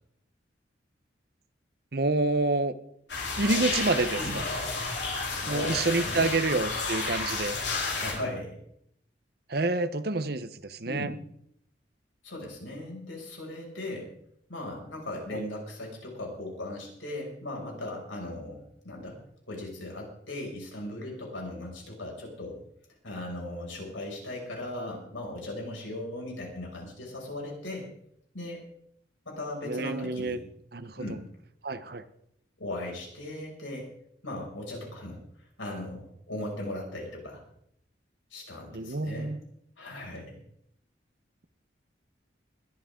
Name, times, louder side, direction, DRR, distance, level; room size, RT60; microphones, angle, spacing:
voice 1, 1.9-2.7 3.4-4.2 5.5-7.6 9.5-11.1 15.3-15.5 29.6-30.4 30.7-30.9 31.6-32.0 38.7-39.4, right 2 dB, 55° right, 12 dB, 1.0 m, -28 dB
sound 1, 3.1-8.1, left 3 dB, 70° left, 4.5 m, -31 dB
voice 2, 5.3-6.3 7.9-8.6 10.8-11.1 12.2-14.1 14.5-19.2 19.5-22.6 23.0-27.9 28.3-28.6 29.2-30.4 31.0-31.2 32.6-33.9 34.2-37.4 38.3-39.4 39.8-40.3, left 1 dB, 85° left, -1 dB, 6.3 m, -38 dB
21.5 x 12.0 x 3.8 m, 0.72 s
head